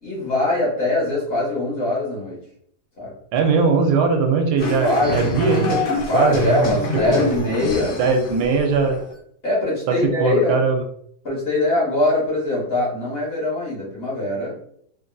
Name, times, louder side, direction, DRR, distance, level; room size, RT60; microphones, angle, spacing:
voice 1, 0.0-2.4 3.0-3.1 4.8-5.3 6.0-8.0 9.4-10.6 11.2-14.6, left 2 dB, 40° left, -5 dB, 1.2 m, -22 dB
voice 2, 3.3-5.8 6.1-6.6 7.1-7.2 8.0-9.0 10.2-10.8, right 4 dB, 85° right, 3 dB, 1.2 m, -19 dB
sound 1, 4.6-9.1, left 1 dB, 65° left, 0.5 m, -26 dB
3.2 x 2.6 x 2.2 m, 0.67 s
omnidirectional pair, 1.7 m